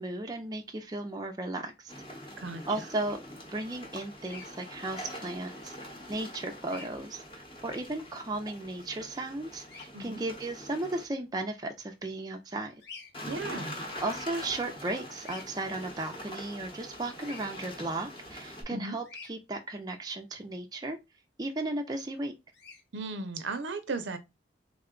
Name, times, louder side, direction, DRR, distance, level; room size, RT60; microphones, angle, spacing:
voice 1, 0.0-1.9 2.7-3.2 3.5-5.8 6.1-12.7 14.0-21.0 21.4-22.3, right 2 dB, 20° right, 0.4 m, -35 dB
sound 1, 1.9-11.0 13.1-18.6, left 1 dB, 25° left, 0.9 m, -44 dB
Bird vocalization bird call bird song, 4.2-4.5 6.6-6.9 9.6-9.9 12.8-13.1 15.2-15.5 17.2-17.5 19.0-19.3 22.5-22.8, left 5 dB, 65° left, 0.8 m, -46 dB
voice 2, 13.3-13.8 18.7-19.0 22.9-24.2, right 3 dB, 75° right, 0.6 m, -36 dB
3.4 x 2.2 x 3.7 m
head